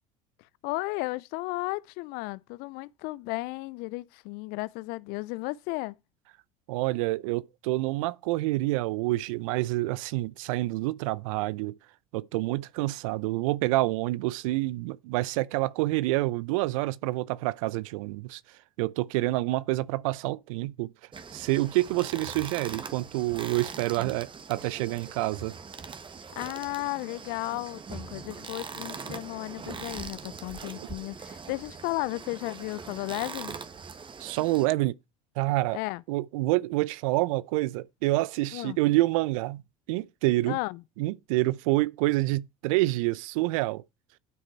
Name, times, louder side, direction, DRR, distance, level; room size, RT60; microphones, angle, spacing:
voice 1, 0.6-5.9 26.4-33.6 35.7-36.0 38.5-38.8 40.5-40.8, left 22 dB, 60° left, 0.5 m, -34 dB
voice 2, 6.7-11.8 12.1-18.4 18.8-20.9 21.3-25.5 34.2-34.9 35.4-35.8 36.1-39.6 39.9-40.6 41.0-43.8, right 19 dB, 70° right, 0.7 m, -27 dB
sound 1, 21.1-34.7, right 5 dB, 30° right, 1.6 m, -42 dB
12.0 x 6.5 x 4.5 m
hypercardioid pair, 70°, 18 cm